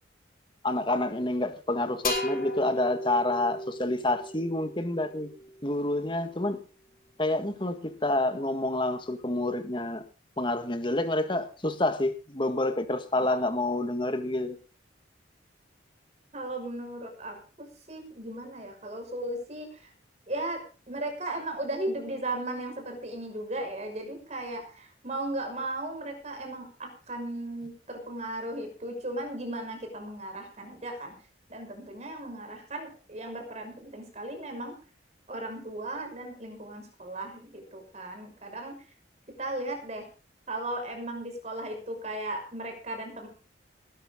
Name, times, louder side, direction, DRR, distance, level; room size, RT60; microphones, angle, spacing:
voice 1, 0.6-5.3 5.6-6.6 7.2-10.0 10.4-14.6, left 2 dB, 25° left, 1.7 m, -28 dB
sound 1, 2.0-5.7, left 1 dB, 50° left, 5.0 m, -34 dB
voice 2, 16.3-19.9 20.3-20.6 20.9-31.1 31.5-34.7 35.3-38.8 39.4-40.1 40.5-43.3, right 1 dB, 35° right, 5.7 m, -36 dB
19.5 x 12.0 x 3.8 m
head